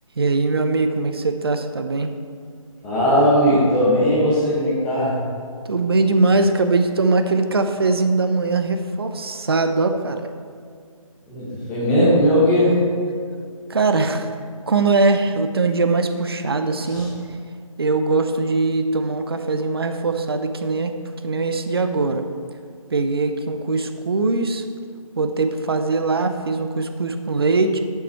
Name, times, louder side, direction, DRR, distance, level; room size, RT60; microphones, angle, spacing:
voice 1, 0.2-2.1 5.6-10.3 13.7-14.3 14.7-17.1 17.8-20.9 21.2-22.3 22.9-24.6 25.2-27.8, right 3 dB, 45° right, 8 dB, 0.6 m, -21 dB
voice 2, 2.8-5.1 11.3-12.8 16.8-17.1, equal, 5° left, -8 dB, 0.8 m, -18 dB
8.2 x 7.1 x 4.4 m, 2.1 s
figure-of-eight pair, 170°, 18 cm